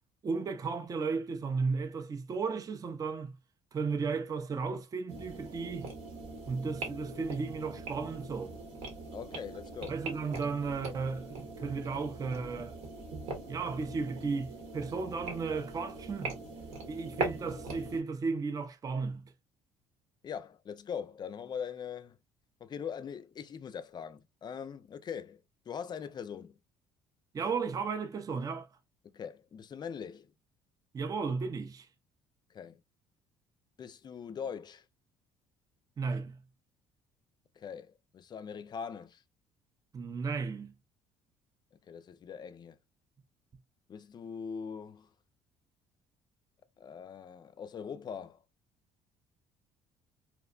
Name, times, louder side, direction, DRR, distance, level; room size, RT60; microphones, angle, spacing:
voice 1, 0.2-3.4 3.7-5.9 6.5-8.6 9.9-12.7 13.5-16.4 16.9-19.3 27.3-28.7 30.9-31.9 36.0-36.4 39.9-40.7, right 4 dB, 30° right, 0.4 m, -34 dB
sound 1, 5.1-18.0, right 3 dB, 70° right, 1.0 m, -42 dB
voice 2, 9.1-10.0 20.2-22.2 22.6-26.6 29.1-30.3 32.5-32.8 33.8-34.8 37.6-39.2 41.9-42.8 43.9-45.1 46.8-48.4, left 7 dB, 35° left, 0.4 m, -42 dB
2.8 x 2.1 x 2.4 m
supercardioid pair, 75°, 12 cm